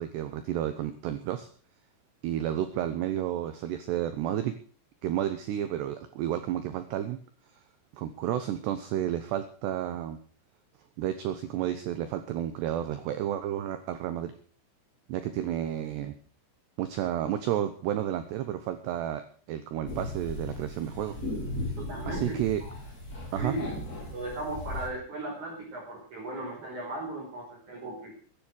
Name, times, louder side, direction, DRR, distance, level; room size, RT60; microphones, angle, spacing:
voice 1, 0.0-1.5 2.2-4.5 5.0-7.2 7.9-10.2 11.0-14.3 15.1-16.1 16.8-19.2 19.5-21.2 22.1-22.6 23.3-23.5, right 11 dB, 75° right, 10 dB, 2.6 m, -31 dB
sound 1, 19.9-24.9, left 1 dB, 20° left, 5.1 m, -36 dB
voice 2, 21.8-22.8 23.4-23.6 24.1-28.1, right 2 dB, 40° right, -1 dB, 5.7 m, -37 dB
15.5 x 10.5 x 6.4 m, 0.42 s
omnidirectional pair, 5.9 m